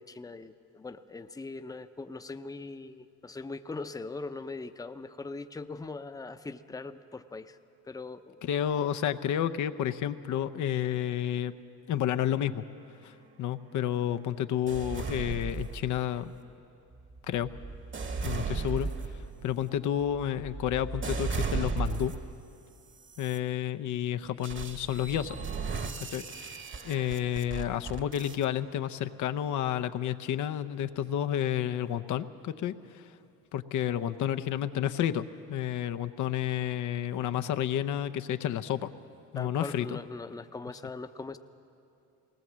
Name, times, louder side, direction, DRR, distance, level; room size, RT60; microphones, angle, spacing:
voice 1, 0.0-7.6 7.8-8.4 39.4-41.4, left 3 dB, 10° left, 10 dB, 0.7 m, -41 dB
voice 2, 8.4-11.5 11.9-12.6 13.0-16.3 17.3-17.5 18.2-18.9 19.4-22.1 23.2-25.4 26.0-33.1 33.5-38.9 39.3-40.0, left 10 dB, 75° left, 9 dB, 0.7 m, -31 dB
sound 1, 14.7-16.2 16.9-22.4 23.0-23.4 24.4-28.5, right 4 dB, 40° right, 1.3 m, -36 dB
18.5 x 18.5 x 7.4 m, 2.7 s
cardioid pair, 90°, 30 cm